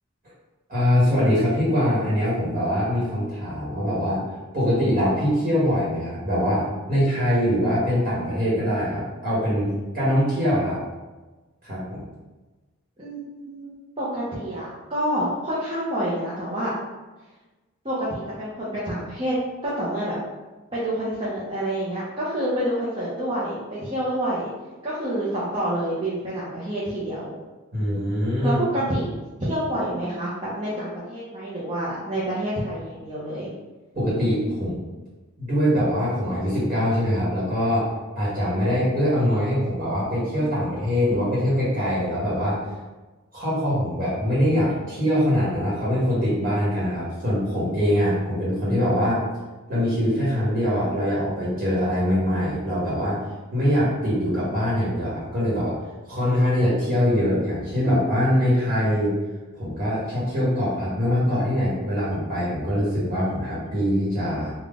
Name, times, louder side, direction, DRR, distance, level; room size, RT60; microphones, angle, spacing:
voice 1, 0.7-4.2 4.5-10.8 11.6-12.0 27.7-28.6 33.9-34.8 35.4-42.6 43.3-49.2 49.7-53.2 53.5-55.7 56.1-59.1 59.6-64.5, equal, 45° right, -8 dB, 1.3 m, -23 dB
voice 2, 13.0-13.7 14.0-16.7 17.8-19.4 19.6-20.2 20.7-24.5 24.8-27.4 28.4-29.1 29.4-33.5, right 1 dB, 25° right, -8 dB, 0.7 m, -28 dB
3.7 x 2.3 x 3.6 m, 1.2 s
head